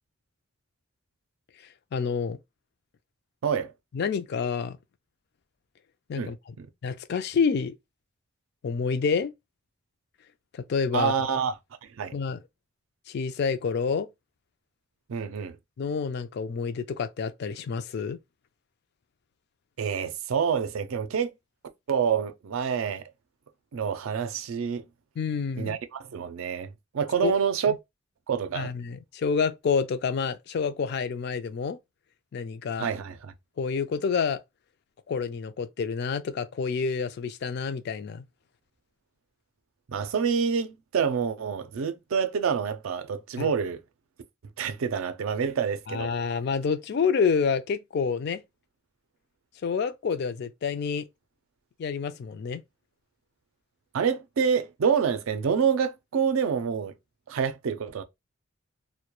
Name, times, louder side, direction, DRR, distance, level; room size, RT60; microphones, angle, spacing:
voice 1, 1.9-2.4 3.9-4.8 6.1-6.6 6.8-7.7 8.6-9.3 10.5-11.1 12.1-12.4 13.1-14.1 15.8-18.2 25.2-25.8 27.2-27.3 27.7-27.8 28.5-31.8 32.3-32.9 33.6-34.4 35.1-38.2 43.4-43.5 45.9-48.4 49.6-51.0 51.8-52.6, left 5 dB, 55° left, 0.3 m, -28 dB
voice 2, 10.9-11.6 12.0-12.1 15.1-15.6 19.8-21.3 21.9-23.0 23.7-24.8 25.6-27.7 28.3-28.7 32.8-33.3 39.9-43.8 44.6-46.1 53.9-56.9 57.3-58.0, right 6 dB, 85° right, 0.4 m, -27 dB
2.2 x 2.1 x 2.9 m
head